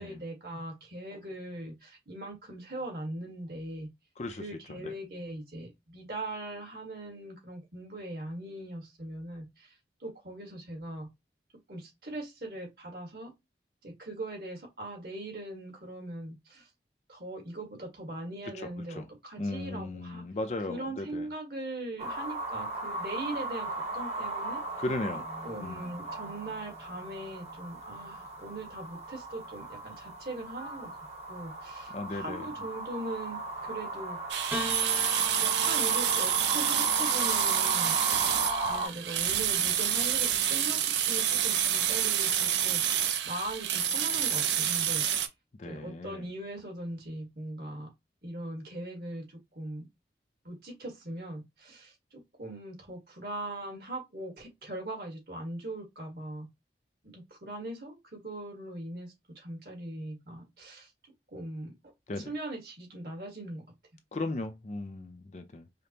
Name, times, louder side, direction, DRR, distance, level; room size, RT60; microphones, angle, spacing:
voice 1, 0.0-3.9 4.3-9.7 10.0-11.1 11.7-13.3 13.8-16.7 17.1-20.2 20.7-24.6 25.4-34.2 35.4-42.8 43.2-45.0 45.6-47.9 48.2-49.9 50.4-56.5 57.0-60.9 61.3-61.7 62.2-63.6, right 1 dB, 55° right, 1.5 m, -40 dB
voice 2, 19.4-21.3 24.8-25.2 25.6-25.9 31.9-32.4 45.6-46.2 62.1-62.3 64.1-65.7, left 2 dB, 40° left, 0.5 m, -36 dB
sound 1, 22.0-38.9, right 2 dB, 35° right, 1.1 m, -36 dB
sound 2, 34.3-45.3, right 9 dB, 80° right, 0.5 m, -28 dB
Piano, 34.5-39.0 40.0-40.8, left 1 dB, 10° right, 0.8 m, -42 dB
5.0 x 2.0 x 2.8 m
head